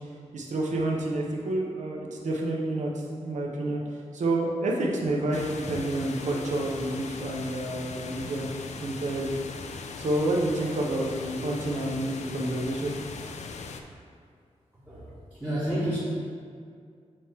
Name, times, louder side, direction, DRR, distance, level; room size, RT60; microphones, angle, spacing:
voice 1, 0.3-9.4 10.0-12.9, right 1 dB, 75° right, -2 dB, 0.9 m, -29 dB
sound 1, 5.3-13.8, left 4 dB, 65° left, 0.4 m, -40 dB
voice 2, 14.7-16.0, right 1 dB, 10° right, -11 dB, 1.1 m, -31 dB
7.6 x 3.1 x 4.5 m, 2.2 s
wide cardioid pair, 160°, 12 cm